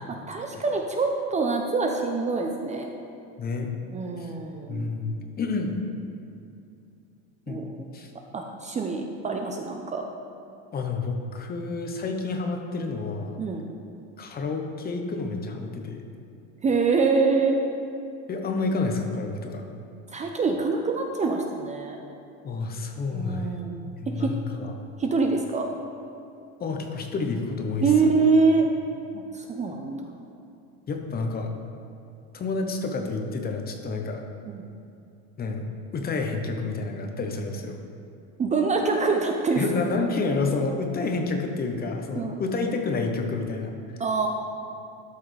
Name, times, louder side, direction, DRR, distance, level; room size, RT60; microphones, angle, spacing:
voice 1, 0.1-2.9 3.9-4.9 7.5-7.9 8.3-10.0 13.4-13.7 16.6-17.6 20.1-22.0 23.1-24.3 25.0-25.7 27.8-28.7 29.3-30.0 34.5-34.6 38.4-39.6 42.1-42.4 44.0-44.3, right 4 dB, 20° right, 3 dB, 0.6 m, -25 dB
voice 2, 3.4-3.7 4.2-4.3 4.7-5.8 7.5-8.1 10.7-13.4 14.2-16.0 18.3-19.6 22.4-23.6 24.0-24.7 26.6-27.9 30.9-31.5 32.3-34.2 35.4-35.6 35.9-37.8 39.6-43.7, left 3 dB, 30° left, 4 dB, 1.0 m, -29 dB
12.5 x 5.7 x 3.3 m, 2.6 s
supercardioid pair, 110°, 32 cm